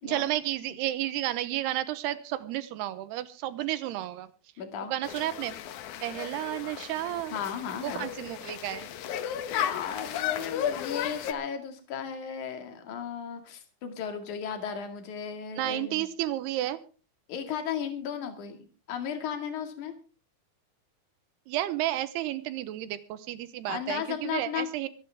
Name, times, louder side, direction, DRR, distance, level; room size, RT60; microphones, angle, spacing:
voice 1, 0.0-4.3 4.8-5.6 6.0-7.4 7.8-8.9 15.6-16.8 21.5-24.9, right 14 dB, 85° right, 14 dB, 3.0 m, -32 dB
voice 2, 4.6-4.9 7.3-8.1 9.5-16.1 17.3-19.9 23.7-24.7, left 8 dB, 55° left, 6 dB, 3.4 m, -35 dB
sound 1, 5.0-11.3, left 10 dB, 70° left, 2.0 m, -34 dB
23.5 x 11.0 x 3.6 m, 0.37 s
omnidirectional pair, 4.6 m